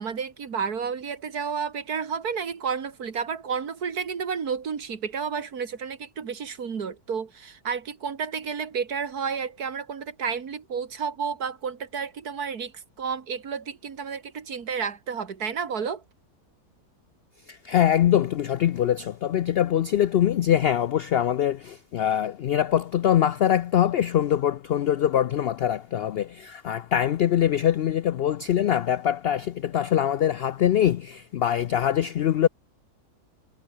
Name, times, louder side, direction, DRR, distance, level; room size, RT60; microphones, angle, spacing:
voice 1, 0.0-16.0, right 6 dB, 80° right, 2.3 m, -31 dB
voice 2, 17.5-32.5, left 10 dB, 85° left, 0.5 m, -23 dB
omnidirectional pair, 1.6 m